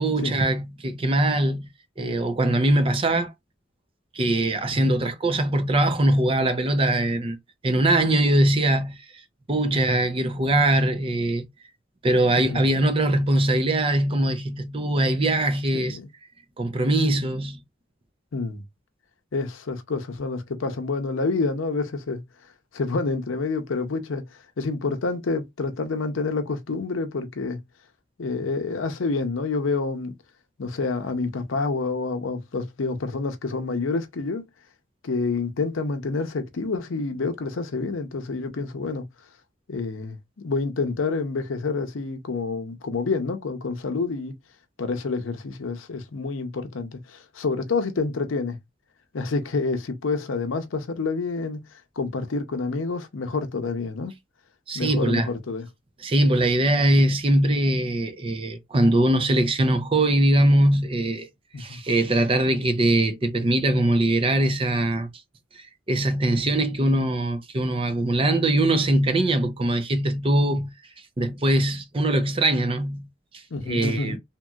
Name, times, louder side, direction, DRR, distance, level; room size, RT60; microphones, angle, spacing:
voice 1, 0.0-1.7 2.0-3.3 4.1-7.4 7.6-9.0 9.5-11.4 12.0-16.0 16.6-17.6 54.7-55.3 56.0-61.3 61.6-65.1 65.9-70.7 71.2-73.1 73.7-74.2, right 1 dB, 30° right, 0.5 m, -22 dB
voice 2, 15.7-16.1 18.3-18.6 19.3-22.2 22.7-24.2 24.6-27.6 28.2-30.1 30.6-34.4 35.0-39.1 39.7-44.4 44.8-48.6 49.1-51.6 52.0-54.1 54.7-55.7 61.5-61.8 70.5-70.6 73.5-74.2, left 3 dB, 90° left, 0.6 m, -28 dB
2.9 x 2.7 x 2.3 m
head